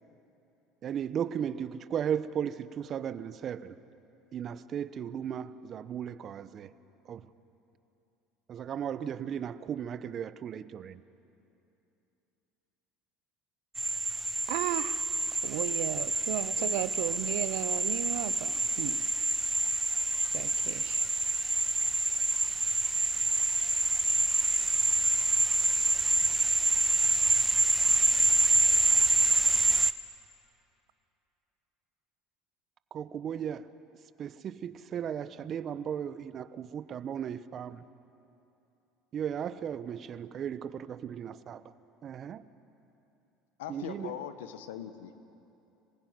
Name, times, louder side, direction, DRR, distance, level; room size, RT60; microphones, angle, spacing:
voice 1, 0.8-3.7 4.3-6.7 7.0-7.3 8.5-11.0 32.9-33.7 34.2-37.9 39.1-41.6 42.0-42.5 43.7-44.1, right 8 dB, 45° right, 14 dB, 0.9 m, -36 dB
sound 1, 13.7-29.9, right 2 dB, 15° right, 0.8 m, -27 dB
voice 2, 14.5-15.0 15.4-19.0 20.3-21.0, right 17 dB, 70° right, 17 dB, 0.6 m, -35 dB
voice 3, 16.3-16.9 43.6-45.2, left 10 dB, 85° left, 10 dB, 1.2 m, -42 dB
26.5 x 15.5 x 9.6 m, 2.9 s
hypercardioid pair, 80°, 0 cm